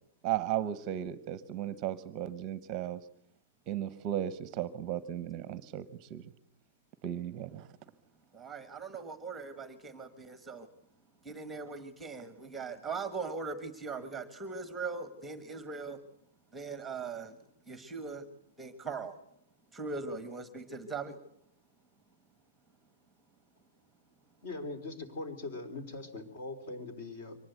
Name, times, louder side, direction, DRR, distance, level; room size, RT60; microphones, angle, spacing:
voice 1, 0.2-3.0 3.7-6.2 7.0-7.7, right 11 dB, 25° right, 16 dB, 0.8 m, -35 dB
voice 2, 8.3-10.7 11.2-16.0 16.5-17.4 17.7-18.2 18.6-19.1 19.7-21.2, right 4 dB, 5° right, 11 dB, 1.3 m, -40 dB
voice 3, 24.4-27.4, left 2 dB, 45° left, 10 dB, 3.9 m, -41 dB
24.0 x 19.5 x 8.2 m, 0.71 s
hypercardioid pair, 170°, 0 cm